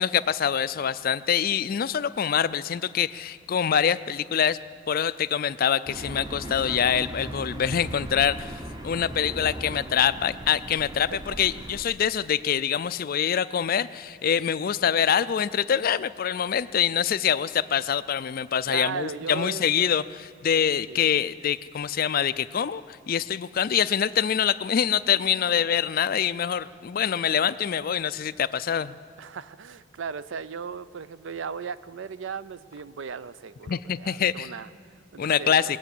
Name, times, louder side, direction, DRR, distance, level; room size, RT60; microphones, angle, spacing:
voice 1, 0.0-4.6 4.9-8.6 8.8-29.0 33.7-34.5 35.2-35.8, left 8 dB, 45° left, 16 dB, 0.4 m, -25 dB
sound 1, 5.8-11.8, right 1 dB, 20° right, 0.8 m, -38 dB
voice 2, 10.9-11.4 18.7-20.0 20.9-21.0 29.2-35.8, right 6 dB, 65° right, 15 dB, 0.4 m, -37 dB
20.5 x 8.0 x 8.4 m, 2.1 s
head